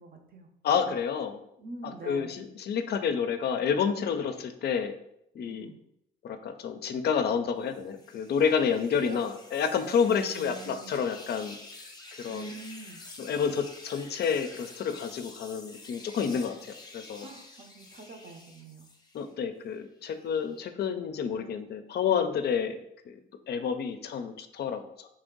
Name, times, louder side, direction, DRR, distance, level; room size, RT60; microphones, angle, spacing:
voice 1, 0.0-0.5 1.6-2.4 5.4-5.8 8.6-9.2 10.1-11.0 12.3-13.0 17.2-18.9, right 3 dB, 45° right, 5 dB, 0.7 m, -45 dB
voice 2, 0.6-1.4 2.1-4.9 5.4-5.7 6.2-11.6 12.2-12.5 13.2-17.3 19.1-22.8 23.1-23.2 23.5-25.1, left 7 dB, 55° left, 8 dB, 0.4 m, -29 dB
sound 1, 7.7-19.3 19.7-20.7, left 2 dB, 20° left, 0.7 m, -49 dB
3.3 x 2.6 x 3.7 m, 0.77 s
cardioid pair, 90°, 20 cm